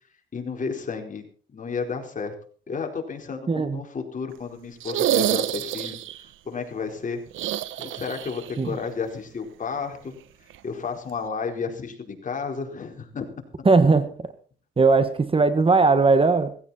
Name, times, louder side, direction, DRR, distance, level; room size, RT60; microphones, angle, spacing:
voice 1, 0.3-1.2 1.5-2.3 2.7-7.2 7.8-10.2 10.6-13.3 13.6-13.7, left 5 dB, 40° left, 3 dB, 4.5 m, -32 dB
voice 2, 3.5-3.8 8.6-8.8 13.6-14.3 14.8-16.6, right 4 dB, 25° right, 11 dB, 1.5 m, -19 dB
sound 1, 4.8-6.2 7.3-8.5 8.8-8.9 10.5-10.6, right 12 dB, 80° right, 1.1 m, -27 dB
17.5 x 16.0 x 4.3 m, 0.43 s
cardioid pair, 90°, 20 cm